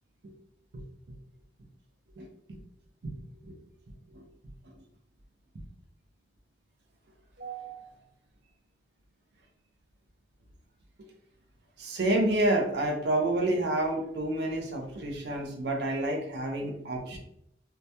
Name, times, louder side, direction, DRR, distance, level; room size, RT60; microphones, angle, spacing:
voice 1, 3.0-3.6 4.1-4.3 7.4-7.9 11.8-17.2, right 1 dB, 75° right, 1 dB, 0.5 m, -29 dB
2.2 x 2.1 x 2.7 m, 0.75 s
head